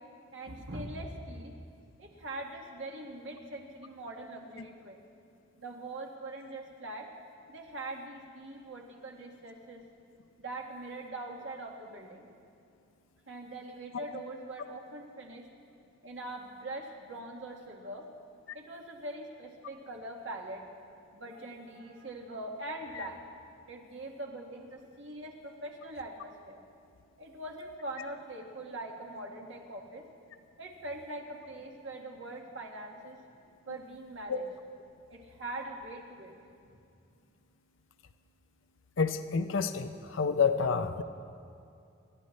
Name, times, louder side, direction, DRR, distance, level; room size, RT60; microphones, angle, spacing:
voice 1, 0.3-1.5 2.0-5.0 5.6-7.1 7.5-9.8 10.4-12.3 13.3-15.5 16.0-18.1 18.5-20.6 21.1-23.2 23.7-26.6 27.2-30.0 30.6-33.2 33.7-34.4 35.1-36.3, right 2 dB, 65° right, 0 dB, 1.8 m, -42 dB
voice 2, 39.0-41.0, left 5 dB, 75° left, 10 dB, 0.6 m, -29 dB
26.5 x 12.0 x 3.2 m, 2.5 s
head